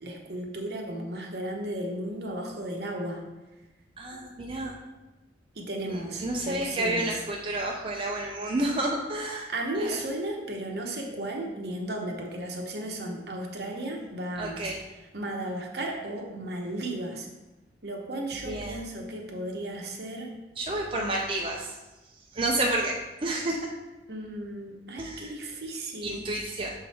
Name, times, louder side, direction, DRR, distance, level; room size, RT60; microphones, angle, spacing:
voice 1, 0.0-3.2 5.5-7.2 9.5-14.7 15.1-17.3 17.8-20.3 24.1-26.3, right 1 dB, 65° right, 1 dB, 1.0 m, -34 dB
voice 2, 4.0-4.7 6.2-9.5 9.8-10.0 14.4-14.8 18.5-18.7 20.6-21.7 22.3-23.7 25.0-25.3 26.0-26.7, right 1 dB, 30° right, -1 dB, 0.5 m, -30 dB
6.4 x 3.9 x 4.2 m, 1.1 s
head